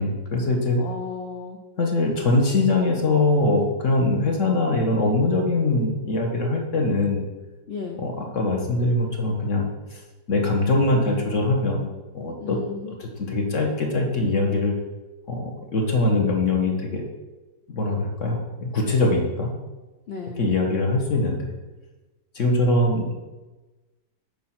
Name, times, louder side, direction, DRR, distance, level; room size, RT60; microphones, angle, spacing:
voice 1, 0.0-0.8 1.8-7.2 8.0-9.7 10.3-11.9 12.1-12.6 13.0-14.7 15.3-17.0 17.7-19.5 20.4-21.5 22.3-23.2, left 2 dB, 45° left, 1 dB, 1.6 m, -22 dB
voice 2, 0.8-1.6 7.7-8.0 12.4-13.0 20.1-20.5, left 5 dB, 90° left, 3 dB, 0.5 m, -34 dB
9.3 x 4.8 x 6.0 m, 1.2 s
omnidirectional pair, 2.1 m